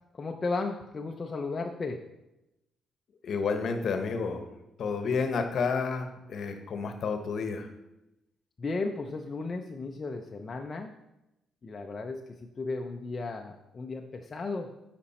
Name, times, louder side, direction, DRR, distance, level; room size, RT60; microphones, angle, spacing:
voice 1, 0.1-2.0 8.6-10.9 11.6-14.7, left 3 dB, 35° left, 3 dB, 0.6 m, -35 dB
voice 2, 3.2-4.5 4.8-7.7, left 5 dB, 60° left, 7 dB, 1.0 m, -30 dB
8.4 x 5.2 x 4.2 m, 0.91 s
cardioid pair, 90°, 0 cm